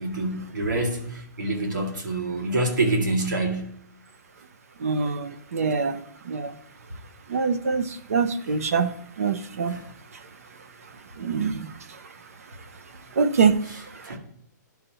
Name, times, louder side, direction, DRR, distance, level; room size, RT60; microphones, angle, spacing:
voice 1, 0.0-3.8 9.7-9.9 14.0-14.2, right 2 dB, 75° right, 2.0 m, -26 dB
voice 2, 4.8-6.0 6.3-6.5 7.3-9.8 11.2-11.7 13.2-13.5 13.9-14.0, right 5 dB, 50° right, 0.6 m, -24 dB
12.0 x 5.5 x 2.8 m
hypercardioid pair, 180°, 10 cm